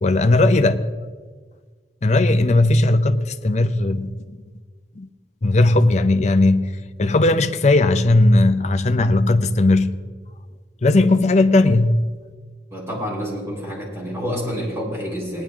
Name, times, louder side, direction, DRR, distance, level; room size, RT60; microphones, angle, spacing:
voice 1, 0.0-0.9 2.0-4.4 5.0-5.1 5.4-6.7 7.0-9.9 10.8-12.1, left 2 dB, 40° left, 0.6 m, -17 dB
voice 2, 12.7-15.4, equal, 15° right, 4.1 m, -28 dB
18.5 x 10.0 x 3.5 m
head